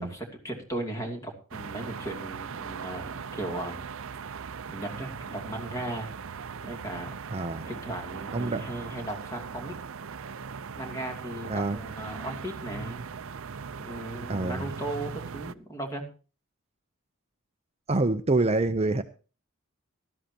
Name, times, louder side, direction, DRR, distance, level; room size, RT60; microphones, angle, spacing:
voice 1, 0.0-3.9 4.7-6.1 6.6-7.1 7.7-9.8 10.8-13.1 13.8-16.0, right 1 dB, 15° left, 3 dB, 2.7 m, -37 dB
sound 1, 1.5-15.5, right 6 dB, 65° right, 0.6 m, -39 dB
voice 2, 7.3-7.7 8.3-8.7 11.5-11.8 14.3-14.7 17.9-19.0, right 2 dB, 30° right, 10 dB, 0.6 m, -26 dB
18.5 x 13.0 x 2.9 m, 0.35 s
head